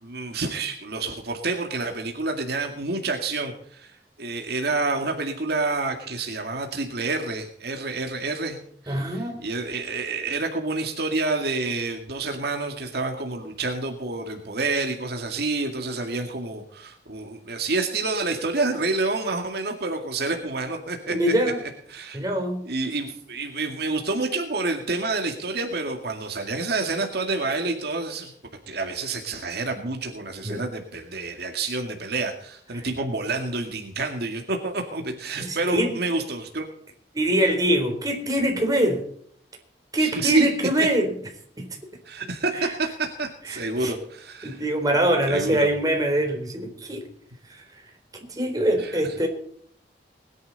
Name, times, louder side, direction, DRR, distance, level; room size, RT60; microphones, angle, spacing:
voice 1, 0.0-21.3 21.9-22.2 22.6-28.3 28.7-36.7 40.0-40.5 42.1-44.6 45.3-45.7 48.8-49.0, right 3 dB, 65° right, 4 dB, 2.2 m, -28 dB
voice 2, 8.9-9.4 21.1-21.6 22.1-22.7 30.4-30.6 32.7-32.8 35.4-36.0 37.1-39.0 39.9-41.1 41.6-41.7 42.5-42.7 43.4-43.9 44.4-47.1 47.4-47.8 48.3-49.3, right 1 dB, 20° right, 2 dB, 4.0 m, -24 dB
21.0 x 10.5 x 4.1 m, 0.63 s
head